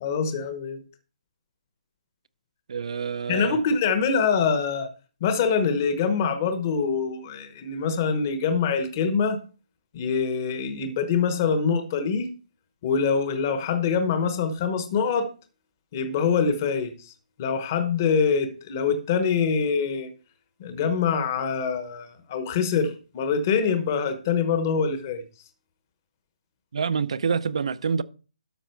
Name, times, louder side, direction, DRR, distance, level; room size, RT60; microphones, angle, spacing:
voice 1, 0.0-0.8 3.3-4.9 5.2-9.4 9.9-12.3 12.8-15.3 15.9-17.1 17.4-20.1 20.6-25.2, left 6 dB, 20° left, 1.0 m, -24 dB
voice 2, 2.7-3.6 26.7-28.0, right 6 dB, 45° right, 0.6 m, -27 dB
12.5 x 6.0 x 4.5 m
hypercardioid pair, 180°, 4 cm